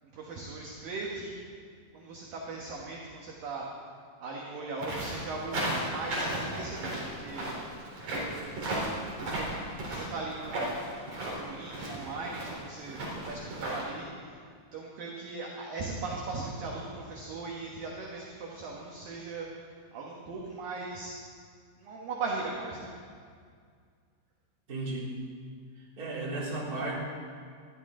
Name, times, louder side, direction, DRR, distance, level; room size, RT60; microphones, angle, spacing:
voice 1, 0.1-1.3 1.9-3.7 4.2-7.5 8.1-8.6 9.2-9.6 9.9-10.8 11.4-14.3 14.7-19.5 19.9-21.2 21.8-22.9, right 3 dB, 65° right, -2 dB, 2.4 m, -39 dB
sound 1, 4.8-13.8, right 1 dB, 40° right, 4.6 m, -35 dB
voice 2, 24.7-25.1 25.8-26.9, right 2 dB, 25° right, -6 dB, 2.8 m, -34 dB
20.5 x 13.5 x 3.8 m, 2.1 s
omnidirectional pair, 5.6 m